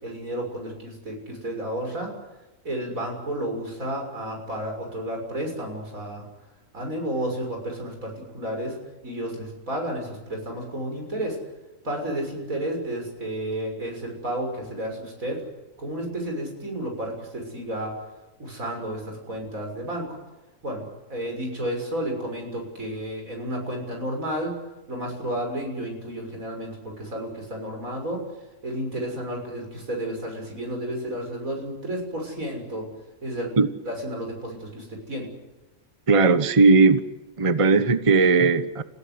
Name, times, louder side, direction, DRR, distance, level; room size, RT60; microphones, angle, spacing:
voice 1, 0.0-2.1 2.6-6.3 6.7-8.8 9.0-11.4 11.8-15.4 15.8-18.0 18.4-20.2 20.6-24.6 24.9-28.2 28.6-32.9 33.2-33.5 33.9-35.3, right 1 dB, 85° right, 2 dB, 7.0 m, -31 dB
voice 2, 36.1-37.0 37.4-38.8, right 4 dB, 25° right, 12 dB, 1.0 m, -17 dB
30.0 x 16.0 x 9.7 m, 1.0 s
omnidirectional pair, 1.4 m